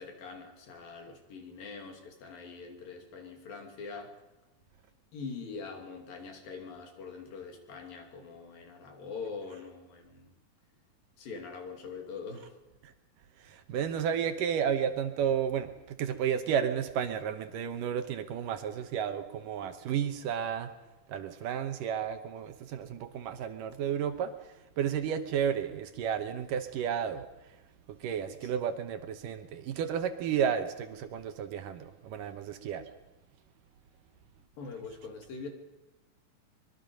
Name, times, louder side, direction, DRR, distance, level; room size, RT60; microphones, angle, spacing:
voice 1, 0.0-4.1 5.1-10.3 11.2-12.5 28.4-28.5 34.6-35.5, left 4 dB, 70° left, 3 dB, 4.3 m, -43 dB
voice 2, 13.4-20.7 21.1-27.3 27.9-32.8, right 8 dB, 70° right, 8 dB, 2.5 m, -32 dB
24.0 x 22.0 x 5.3 m, 1.0 s
omnidirectional pair, 4.2 m